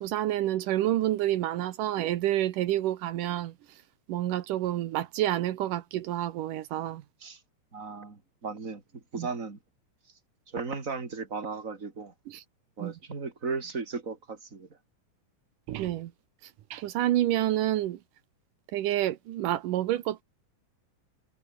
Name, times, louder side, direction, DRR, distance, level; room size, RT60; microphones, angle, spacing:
voice 1, 0.0-3.5 4.1-7.0 9.2-9.3 12.3-12.4 12.8-13.0 15.7-16.1 16.7-18.0 18.7-20.2, right 13 dB, 80° right, 2.7 m, -28 dB
voice 2, 7.7-8.8 9.1-9.6 10.5-12.1 12.8-14.7, right 4 dB, 25° right, 3.7 m, -36 dB
omnidirectional pair, 3.7 m